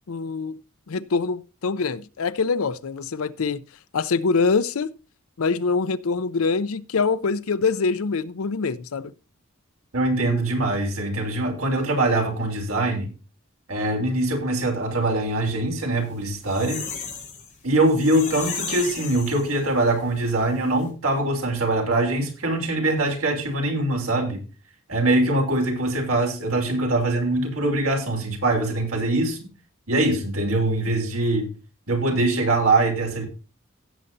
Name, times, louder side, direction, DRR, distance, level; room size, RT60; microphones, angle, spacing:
voice 1, 0.1-0.6 0.9-3.6 3.9-4.9 5.4-9.1, left 4 dB, 90° left, 0.6 m, -24 dB
voice 2, 9.9-13.1 13.7-16.8 17.6-24.4 24.9-29.4 29.9-31.5 31.9-33.3, right 2 dB, 85° right, 3.2 m, -23 dB
sound 1, 16.1-19.9 20.3-20.4 20.7-20.8, left 6 dB, 35° left, 5.1 m, -34 dB
16.0 x 7.8 x 2.7 m
head